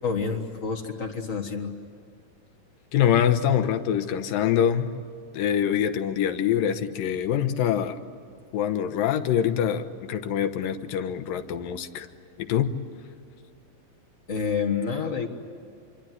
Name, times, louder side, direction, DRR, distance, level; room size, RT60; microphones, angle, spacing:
voice 1, 0.0-1.7 14.3-15.3, left 5 dB, 60° left, 4 dB, 0.8 m, -28 dB
voice 2, 2.9-4.9 5.3-8.0 8.5-12.1 12.4-12.7, left 9 dB, 80° left, 8 dB, 2.7 m, -24 dB
26.5 x 23.5 x 9.3 m, 2.4 s
omnidirectional pair, 4.0 m